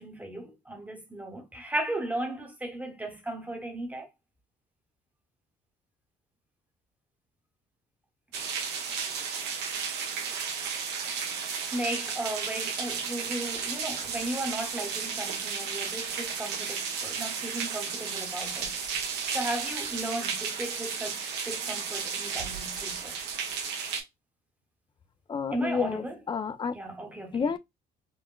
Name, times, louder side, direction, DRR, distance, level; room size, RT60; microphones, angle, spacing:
voice 1, 0.0-4.1 11.7-18.8 19.1-23.1 25.5-26.2 26.7-27.5, right 1 dB, 10° right, 0.9 m, -36 dB
sound 1, 8.3-24.0, right 6 dB, 85° right, 0.9 m, -33 dB
voice 2, 25.3-26.7 27.3-27.6, left 6 dB, 30° left, 0.4 m, -30 dB
3.8 x 2.1 x 2.2 m
cardioid pair, 110°, 17 cm